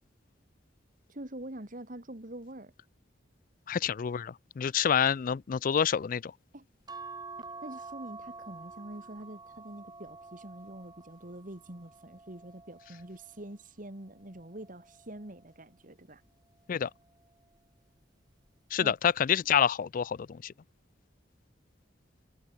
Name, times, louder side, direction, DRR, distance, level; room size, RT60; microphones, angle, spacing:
voice 1, 1.1-2.7 6.5-6.7 7.6-16.2 18.8-18.9, right 1 dB, 45° right, 2.4 m, -45 dB
voice 2, 3.7-6.3 16.7-16.9 18.7-20.5, left 8 dB, 45° left, 0.4 m, -27 dB
sound 1, 6.9-13.5 14.1-15.5 16.8-17.2 17.5-17.6, right 4 dB, 20° right, 1.4 m, -48 dB
head